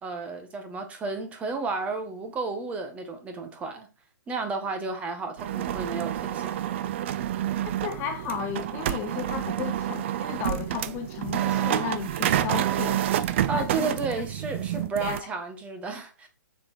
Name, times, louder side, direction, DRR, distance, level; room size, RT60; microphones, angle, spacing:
voice 1, 0.0-3.9 4.3-6.6 13.5-16.3, right 3 dB, 10° right, 1.6 m, -32 dB
sound 1, 5.4-15.2, right 11 dB, 40° right, 0.6 m, -28 dB
voice 2, 7.8-13.0 13.5-13.9 15.0-15.3, left 8 dB, 20° left, 0.8 m, -34 dB
7.3 x 6.5 x 4.5 m
hypercardioid pair, 150°, 10 cm